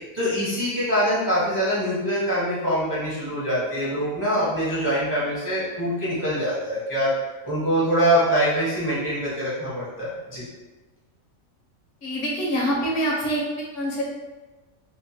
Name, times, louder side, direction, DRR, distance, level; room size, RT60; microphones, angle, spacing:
voice 1, 0.1-7.1 7.4-10.5, equal, 25° right, -9 dB, 0.4 m, -24 dB
voice 2, 12.0-14.0, equal, 65° left, -4 dB, 1.0 m, -25 dB
2.9 x 2.1 x 2.7 m, 1.2 s
omnidirectional pair, 1.4 m